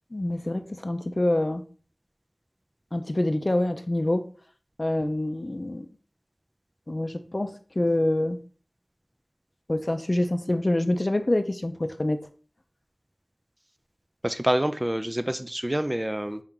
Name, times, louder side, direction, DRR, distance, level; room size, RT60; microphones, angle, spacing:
voice 1, 0.1-1.6 2.9-4.3 4.8-5.9 6.9-8.4 9.7-12.2, left 1 dB, 40° left, 8 dB, 0.5 m, -26 dB
voice 2, 14.2-16.4, right 1 dB, 20° right, 9 dB, 0.3 m, -27 dB
4.9 x 2.9 x 3.6 m, 0.41 s
wide cardioid pair, 50°, 0 cm